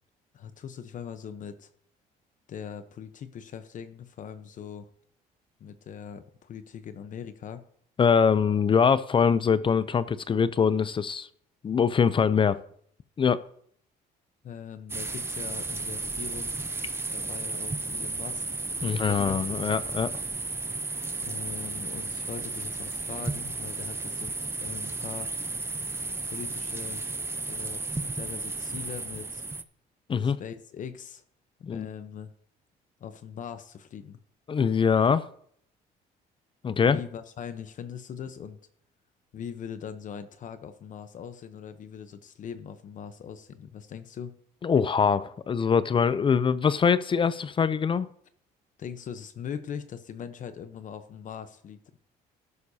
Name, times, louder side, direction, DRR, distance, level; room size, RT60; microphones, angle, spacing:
voice 1, 0.3-1.7 2.5-4.9 5.6-7.6 14.4-16.6 17.1-18.4 18.7-19.4 21.2-25.3 26.2-27.0 27.5-29.5 30.2-31.2 31.7-32.3 33.0-34.2 36.8-38.6 39.3-44.3 48.8-52.0, left 8 dB, 50° left, 0.9 m, -41 dB
voice 2, 8.0-11.3 11.6-12.6 13.2-13.4 18.8-20.1 30.1-30.4 31.6-31.9 34.5-35.3 36.6-37.0 44.6-48.1, left 6 dB, 30° left, 0.5 m, -23 dB
sound 1, 14.9-29.6, right 3 dB, 15° right, 0.6 m, -34 dB
13.5 x 11.0 x 2.8 m
cardioid pair, 110°, 17 cm